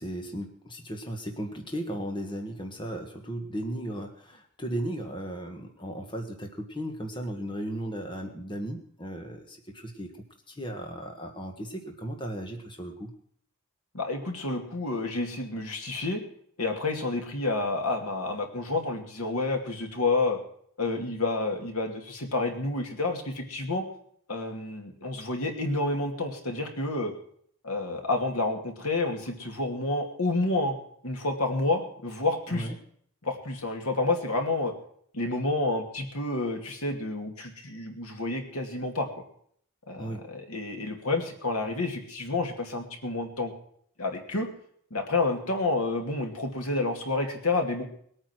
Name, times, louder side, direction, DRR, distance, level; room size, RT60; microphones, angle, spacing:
voice 1, 0.0-13.1 32.5-32.7 40.0-40.2, right 1 dB, 20° left, 3 dB, 1.6 m, -36 dB
voice 2, 13.9-16.2 16.6-20.4 20.8-23.9 24.3-27.1 27.6-32.7 33.2-34.7 35.1-39.1 39.9-43.5 44.0-44.5 44.9-47.8, left 2 dB, 75° left, 3 dB, 2.6 m, -29 dB
20.5 x 9.0 x 6.2 m, 0.63 s
head